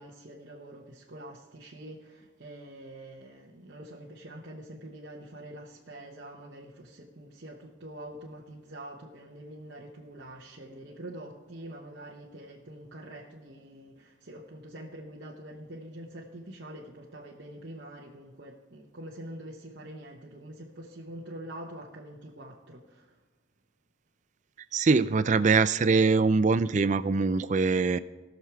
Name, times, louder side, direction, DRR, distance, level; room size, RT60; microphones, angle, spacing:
voice 1, 0.0-23.2, right 1 dB, 55° right, -3 dB, 1.1 m, -45 dB
voice 2, 24.7-28.0, right 4 dB, 35° right, 15 dB, 0.4 m, -23 dB
18.0 x 6.6 x 4.7 m, 1.2 s
head